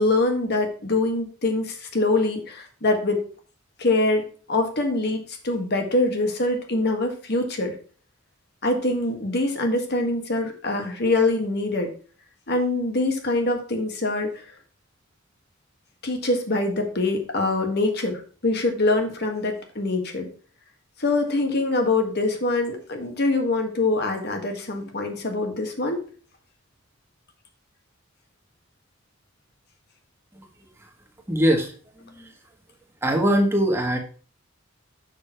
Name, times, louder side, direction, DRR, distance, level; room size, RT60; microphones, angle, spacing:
voice 1, 0.0-3.2 3.8-7.7 8.6-11.9 12.5-14.3 16.0-20.3 21.0-26.0, left 2 dB, 55° left, 4 dB, 1.6 m, -24 dB
voice 2, 31.3-32.3 33.0-34.0, equal, 10° right, 1 dB, 1.5 m, -22 dB
6.8 x 6.3 x 4.4 m, 0.41 s
head